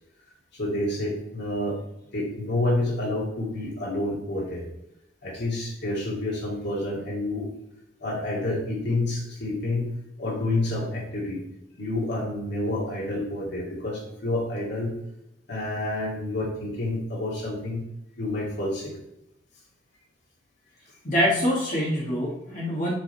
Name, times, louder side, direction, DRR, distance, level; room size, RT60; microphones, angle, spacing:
voice 1, 0.6-1.8 2.1-4.6 5.2-7.5 8.0-9.9 10.2-11.4 11.8-14.9 15.5-17.8 18.2-18.9, left 2 dB, 65° left, -5 dB, 2.2 m, -28 dB
voice 2, 21.0-23.0, equal, 45° left, -5 dB, 1.5 m, -25 dB
7.0 x 3.6 x 4.3 m, 0.88 s
head